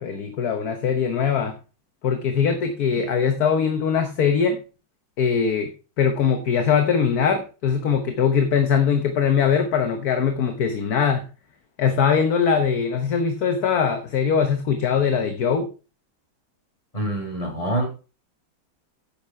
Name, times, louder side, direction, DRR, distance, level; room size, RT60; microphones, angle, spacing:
voice 1, 0.0-1.6 2.0-4.6 5.2-5.7 6.0-11.3 11.8-15.7, left 6 dB, 55° left, 7 dB, 1.4 m, -21 dB
voice 2, 16.9-17.9, right 1 dB, 15° left, 0 dB, 4.6 m, -25 dB
9.9 x 6.9 x 4.7 m, 0.33 s
omnidirectional pair, 2.2 m